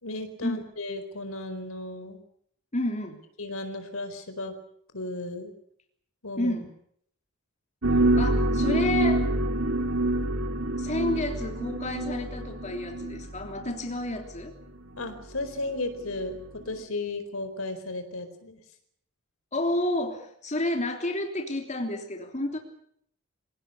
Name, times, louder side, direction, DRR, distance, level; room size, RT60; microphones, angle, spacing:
voice 1, 0.0-2.2 3.4-4.5 4.9-5.5 6.2-6.6 15.0-16.4 16.6-18.6, left 2 dB, 70° left, 9 dB, 4.5 m, -34 dB
voice 2, 2.7-3.2 6.4-6.7 7.9-9.3 10.8-14.5 19.5-22.6, left 1 dB, 35° left, 4 dB, 3.3 m, -30 dB
sound 1, 7.8-14.2 15.0-15.1 16.0-16.1 16.8-16.9, right 1 dB, 65° right, 2.6 m, -26 dB
26.5 x 18.0 x 8.5 m, 0.68 s
head